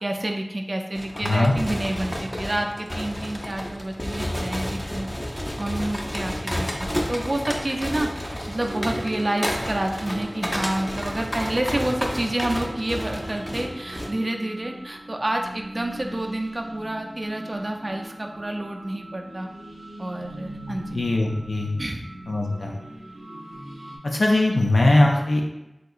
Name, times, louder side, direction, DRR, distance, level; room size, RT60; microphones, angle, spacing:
voice 1, 0.0-5.1 5.3-19.5 20.0-21.1 21.8-22.0, right 1 dB, 40° right, 2 dB, 0.4 m, -29 dB
sound 1, 0.9-14.1, equal, 20° left, 0.4 m, -31 dB
voice 2, 1.2-1.5 20.9-21.7 22.3-22.7 24.0-25.4, left 2 dB, 75° left, 0 dB, 0.4 m, -20 dB
sound 2, 8.6-24.0, right 1 dB, 90° right, 0.6 m, -40 dB
3.5 x 2.8 x 2.4 m, 0.92 s
wide cardioid pair, 60°, 0 cm